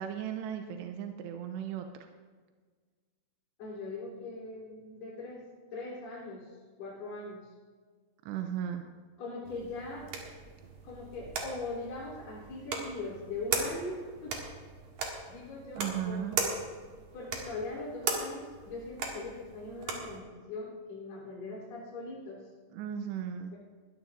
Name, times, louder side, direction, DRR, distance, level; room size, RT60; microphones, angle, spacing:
voice 1, 0.0-2.1 8.3-8.8 15.8-16.4 22.7-23.5, right 9 dB, 85° right, 5 dB, 2.7 m, -36 dB
voice 2, 3.6-5.4 5.7-6.5 6.8-7.5 9.2-10.1 10.8-14.4 15.3-16.5 17.1-22.4, left 2 dB, 50° left, -8 dB, 5.1 m, -41 dB
sound 1, 9.4-20.2, right 4 dB, 55° right, 2.2 m, -38 dB
20.5 x 13.5 x 2.6 m, 1.5 s
omnidirectional pair, 5.3 m